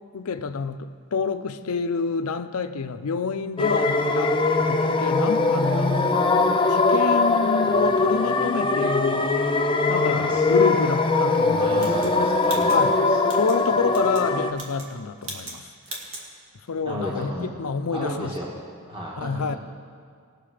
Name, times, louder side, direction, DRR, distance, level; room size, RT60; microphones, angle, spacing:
voice 1, 0.1-4.3 4.7-6.2 6.7-9.3 9.9-11.8 12.7-12.9 13.3-15.6 16.7-18.3 19.2-19.6, left 5 dB, 70° left, 10 dB, 0.5 m, -28 dB
sound 1, 3.6-14.5, left 3 dB, 20° left, 0.6 m, -21 dB
voice 2, 11.6-13.2 16.8-17.6 17.9-18.5 18.9-19.6, equal, 25° right, -4 dB, 1.4 m, -33 dB
sound 2, 11.8-13.6 13.9-14.3 14.5-14.9 15.2-15.6 15.8-16.3, right 2 dB, 65° right, 2.1 m, -38 dB
19.0 x 6.5 x 4.9 m, 2.1 s
head